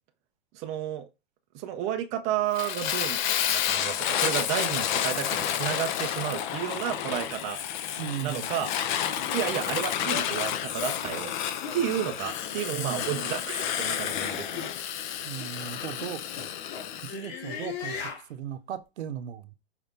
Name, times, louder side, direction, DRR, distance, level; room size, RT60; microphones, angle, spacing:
voice 1, 0.5-1.0 1.5-3.2 3.5-7.6 8.2-8.7 9.3-11.3 11.7-14.7, right 10 dB, 20° right, 0.4 m, -31 dB
Fire, 2.5-17.2, left 10 dB, 45° left, 0.6 m, -30 dB
voice 2, 8.0-8.5 12.7-13.1 15.2-16.5 17.0-19.5, right 10 dB, 70° right, 0.7 m, -37 dB
sound 1, 9.3-9.4 10.1-10.3 10.8-11.0 11.6-11.8 12.4-12.6 13.5-13.8 14.5-14.7 15.4-15.5 16.0-18.2, left 6 dB, 60° left, 1.4 m, -38 dB
4.8 x 2.6 x 3.5 m
hypercardioid pair, 135°, 34 cm